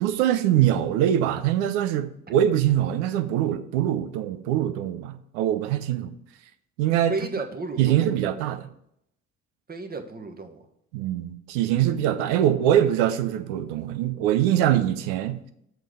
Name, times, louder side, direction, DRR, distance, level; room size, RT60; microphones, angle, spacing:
voice 1, 0.0-6.1 6.8-7.1 7.8-8.7 10.9-15.5, right 11 dB, 70° right, 11 dB, 0.7 m, -23 dB
voice 2, 7.1-8.1 9.7-10.7, right 3 dB, 25° right, 5 dB, 1.2 m, -33 dB
7.6 x 3.6 x 6.4 m, 0.73 s
figure-of-eight pair, 55°, 37 cm